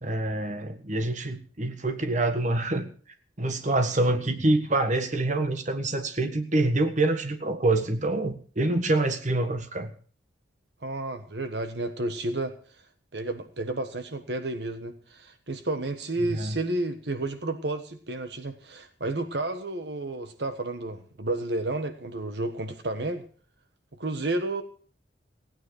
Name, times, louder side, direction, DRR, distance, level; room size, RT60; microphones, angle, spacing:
voice 1, 0.0-2.9 3.4-9.9 16.2-16.6, right 2 dB, 40° right, 8 dB, 1.5 m, -26 dB
voice 2, 10.8-12.5 13.1-23.2 24.0-24.6, right 2 dB, 65° right, 9 dB, 1.4 m, -31 dB
16.5 x 9.5 x 6.4 m, 0.42 s
head